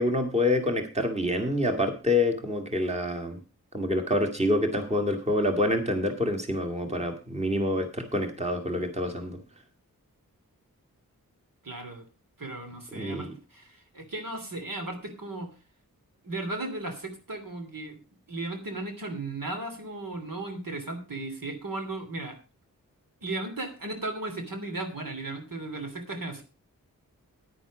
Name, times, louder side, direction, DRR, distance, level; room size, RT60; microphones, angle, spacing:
voice 1, 0.0-3.4 3.7-9.4 12.9-13.3, left 1 dB, 20° right, 5 dB, 2.2 m, -27 dB
voice 2, 11.6-12.0 12.4-15.5 16.2-18.0 18.3-22.4 23.2-26.4, right 2 dB, 70° right, 4 dB, 3.1 m, -36 dB
10.0 x 9.7 x 5.0 m, 0.33 s
cardioid pair, 45°, 35 cm